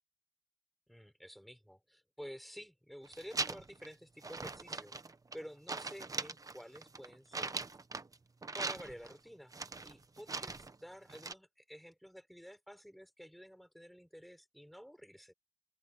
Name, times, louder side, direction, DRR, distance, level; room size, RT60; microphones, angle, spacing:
voice 1, 0.9-5.0 5.3-7.6 8.5-9.5 9.8-15.3, equal, ahead, 3.9 m, -51 dB
sound 1, 3.1-3.9 4.2-5.4 5.7-8.1 8.4-9.1 9.5-10.7 11.1-11.3, right 3 dB, 20° right, 0.8 m, -41 dB
open air
wide cardioid pair, 175°, 16 cm